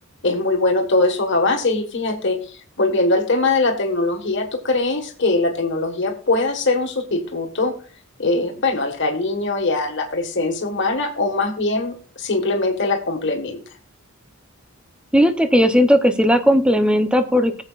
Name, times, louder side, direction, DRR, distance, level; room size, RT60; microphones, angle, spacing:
voice 1, 0.2-7.7 8.2-13.6, left 2 dB, 55° left, 4 dB, 1.6 m, -21 dB
voice 2, 15.1-17.6, equal, 5° right, 8 dB, 0.7 m, -16 dB
18.5 x 7.4 x 2.4 m, 0.40 s
head